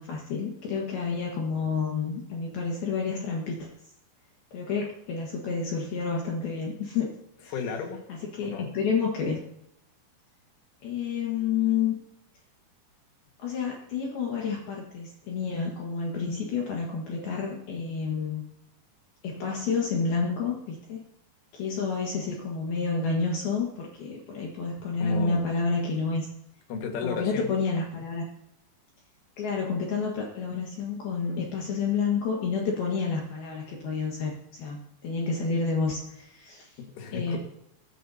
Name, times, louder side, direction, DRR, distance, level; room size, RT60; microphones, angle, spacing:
voice 1, 0.0-3.7 4.5-7.1 7.4-7.5 8.1-9.4 10.8-12.0 13.4-18.4 19.2-21.0 21.5-26.3 27.0-28.3 29.4-36.7 37.1-37.4, left 5 dB, 60° left, -1 dB, 3.1 m, -29 dB
voice 2, 7.5-8.0 8.4-8.7 25.0-25.5 26.7-27.5 27.9-28.0 36.8-37.4, left 6 dB, 85° left, 3 dB, 4.2 m, -33 dB
22.0 x 11.0 x 2.8 m, 0.80 s
omnidirectional pair, 5.4 m